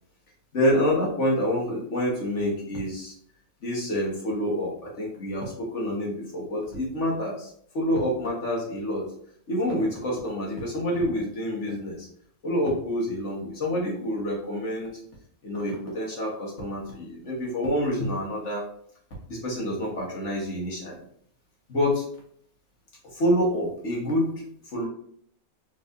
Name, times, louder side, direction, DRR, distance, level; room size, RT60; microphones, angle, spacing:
voice 1, 0.5-3.1 3.6-9.1 9.5-12.1 12.4-14.9 15.4-18.6 19.3-21.0 21.7-22.0 23.1-24.4 24.7-24.9, equal, 50° left, -3 dB, 1.7 m, -27 dB
4.1 x 4.1 x 2.6 m, 0.63 s
omnidirectional pair, 1.6 m